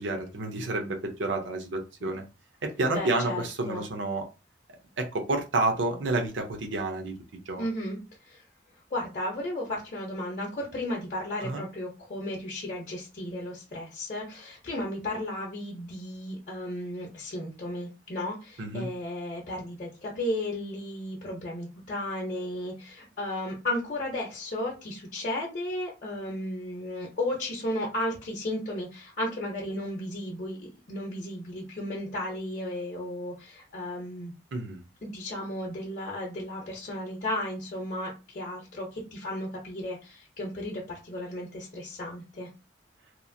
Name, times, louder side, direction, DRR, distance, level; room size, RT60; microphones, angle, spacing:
voice 1, 0.0-2.2 2.6-4.3 5.0-7.2 7.5-7.6 11.4-11.6 18.6-18.9 34.5-34.8, right 2 dB, 75° right, 4 dB, 0.6 m, -29 dB
voice 2, 2.9-3.8 7.6-8.4 8.9-34.3 35.0-42.5, left 1 dB, 45° left, -2 dB, 0.7 m, -34 dB
2.9 x 2.4 x 2.6 m, 0.30 s
head